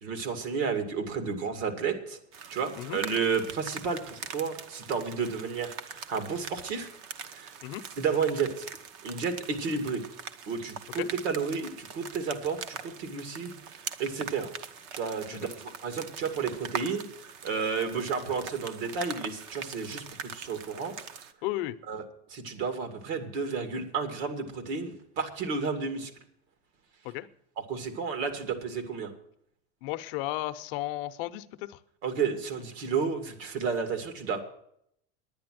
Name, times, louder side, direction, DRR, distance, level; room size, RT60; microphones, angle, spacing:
voice 1, 0.0-2.2 2.5-6.9 7.3-7.5 8.0-8.7 9.0-10.0 10.5-14.5 14.9-17.0 17.4-20.0 20.3-20.9 21.9-22.0 22.3-26.1 27.7-29.1 32.0-34.4, right 5 dB, 60° right, 7 dB, 2.5 m, -31 dB
sound 1, 2.3-21.3, right 7 dB, 45° right, 1.0 m, -43 dB
voice 2, 21.4-21.8 27.0-27.3 29.8-31.8, left 16 dB, 55° left, 11 dB, 0.7 m, -34 dB
10.5 x 9.8 x 7.6 m, 0.71 s
supercardioid pair, 155°, 33 cm